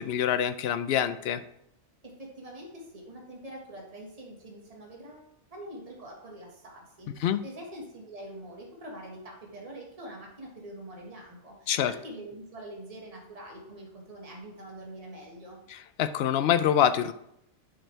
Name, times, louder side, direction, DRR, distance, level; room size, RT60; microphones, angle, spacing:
voice 1, 0.0-1.4 7.2-7.4 11.7-11.9 15.7-17.1, left 9 dB, 65° left, 12 dB, 0.7 m, -25 dB
voice 2, 2.0-15.6, right 1 dB, 30° right, -1 dB, 1.7 m, -44 dB
8.9 x 6.2 x 3.3 m, 0.76 s
omnidirectional pair, 1.2 m